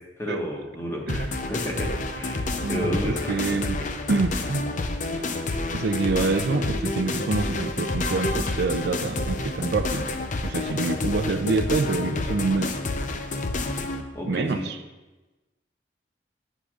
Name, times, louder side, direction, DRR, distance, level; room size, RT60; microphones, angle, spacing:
voice 1, 0.2-1.0 1.4-1.9 2.1-3.5 14.1-14.7, equal, 15° left, -1 dB, 1.4 m, -31 dB
sound 1, 1.1-14.0, left 2 dB, 45° left, 0.6 m, -29 dB
voice 2, 2.6-3.8 4.1-4.6 5.7-10.1 10.4-12.8 14.2-14.8, right 3 dB, 65° right, 9 dB, 0.4 m, -26 dB
11.0 x 8.1 x 2.4 m, 1.1 s
head